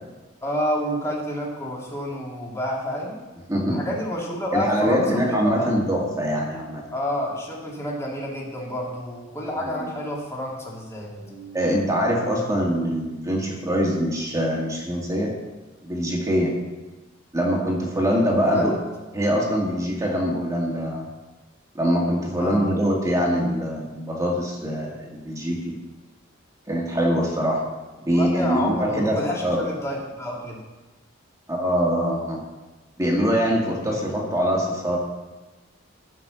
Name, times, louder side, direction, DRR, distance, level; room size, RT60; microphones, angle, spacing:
voice 1, 0.4-3.2 3.7-5.7 6.9-11.6 18.5-18.7 22.4-22.6 28.1-30.6 33.8-34.1, equal, 15° left, -4 dB, 2.8 m, -29 dB
voice 2, 3.5-3.8 4.5-6.8 9.8-9.9 11.5-15.3 15.8-16.5 17.3-18.7 19.1-21.1 21.7-25.8 26.7-27.6 28.1-29.2 29.4-29.6 31.5-32.4 33.0-35.0, equal, 15° right, -2 dB, 2.2 m, -23 dB
15.0 x 5.9 x 7.0 m, 1.2 s
head